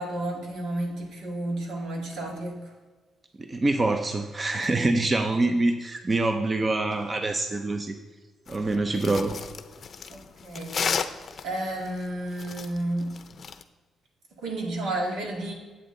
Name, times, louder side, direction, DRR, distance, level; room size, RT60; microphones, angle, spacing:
voice 1, 0.0-2.7 4.6-4.7 10.1-11.1 11.4-13.2 14.4-15.5, right 1 dB, 80° right, 0 dB, 2.2 m, -32 dB
voice 2, 3.4-8.0 8.5-9.3, right 2 dB, 30° right, 6 dB, 0.7 m, -25 dB
sound 1, 8.5-13.6, left 6 dB, 50° left, 0.6 m, -33 dB
9.8 x 8.0 x 3.9 m, 1.3 s
cardioid pair, 90°, 0 cm